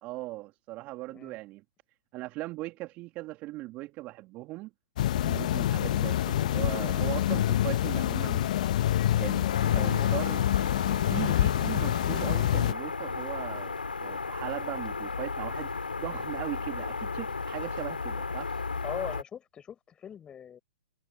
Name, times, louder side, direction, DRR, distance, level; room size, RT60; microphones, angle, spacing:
voice 1, 0.0-1.6 2.1-4.7 5.2-10.4 11.1-18.5, right 19 dB, 35° right, 2.4 m, -39 dB
sound 1, 5.0-12.7, left 12 dB, 55° left, 0.8 m, -26 dB
sound 2, 9.5-19.2, left 4 dB, 90° left, 4.3 m, -35 dB
voice 2, 9.7-10.5 18.8-20.6, left 8 dB, 20° left, 5.9 m, -41 dB
hypercardioid pair, 120°, 5 cm